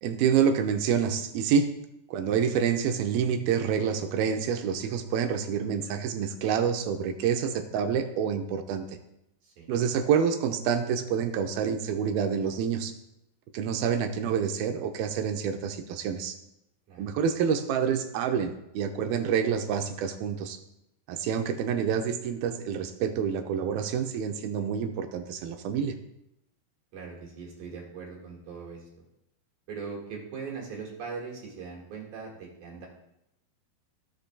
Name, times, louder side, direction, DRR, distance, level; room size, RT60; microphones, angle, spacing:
voice 1, 0.0-1.7 2.1-8.9 9.7-12.9 13.5-16.4 17.0-20.6 21.1-25.9, right 7 dB, 85° right, 6 dB, 2.5 m, -27 dB
voice 2, 26.9-28.8 29.7-32.9, right 5 dB, 60° right, -2 dB, 3.0 m, -40 dB
16.0 x 6.6 x 2.2 m, 0.83 s
omnidirectional pair, 4.2 m